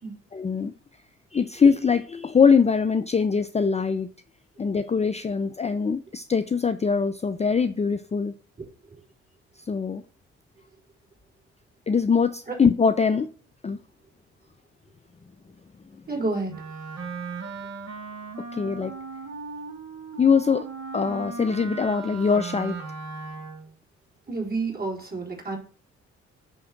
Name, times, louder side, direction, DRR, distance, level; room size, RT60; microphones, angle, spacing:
voice 1, 0.3-0.7 1.3-4.1 4.6-8.3 9.7-10.0 11.9-13.3 13.6-13.8 18.6-18.9 20.2-20.7 20.9-22.8, left 5 dB, 20° left, 9 dB, 0.5 m, -22 dB
voice 2, 16.1-16.7 24.3-25.6, right 3 dB, 30° right, -3 dB, 4.0 m, -30 dB
Wind instrument woodwind instrument, 16.5-23.7, right 4 dB, 50° right, 1.6 m, -37 dB
9.9 x 3.5 x 5.9 m, 0.41 s
hypercardioid pair, 45°, 33 cm